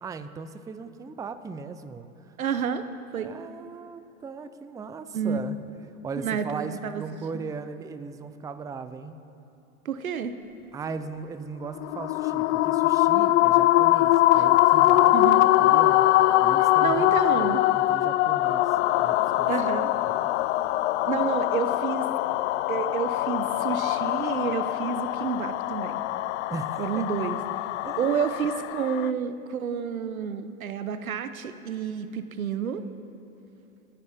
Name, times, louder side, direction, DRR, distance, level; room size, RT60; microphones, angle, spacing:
voice 1, 0.0-2.3 3.2-5.6 6.0-9.1 10.7-16.1 16.4-19.5 20.1-20.3 26.5-27.1 27.8-28.2, right 4 dB, 10° right, 11 dB, 0.5 m, -38 dB
voice 2, 2.4-2.9 3.1-3.3 5.1-5.4 6.2-7.0 7.3-7.5 9.8-10.3 15.1-15.4 16.8-17.6 19.5-19.9 21.0-22.1 22.7-26.0 26.8-27.4 28.0-32.8, right 7 dB, 90° right, 11 dB, 0.9 m, -29 dB
sound 1, 11.8-29.1, left 16 dB, 60° left, 0.5 m, -23 dB
28.5 x 9.9 x 3.6 m, 2.8 s
hypercardioid pair, 100°, 41 cm